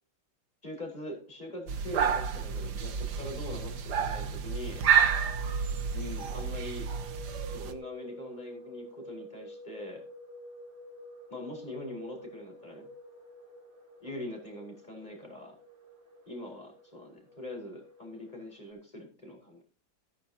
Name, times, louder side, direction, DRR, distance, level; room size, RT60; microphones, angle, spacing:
voice 1, 0.6-4.9 5.9-6.9 7.5-10.0 11.3-12.9 14.0-15.6 16.3-19.6, left 1 dB, 20° left, 0 dB, 5.1 m, -42 dB
sound 1, 1.1-18.7, left 1 dB, 85° right, 6.0 m, -51 dB
sound 2, 1.7-7.7, right 7 dB, 60° right, 1.7 m, -30 dB
15.0 x 14.0 x 2.9 m, 0.35 s
omnidirectional pair, 2.1 m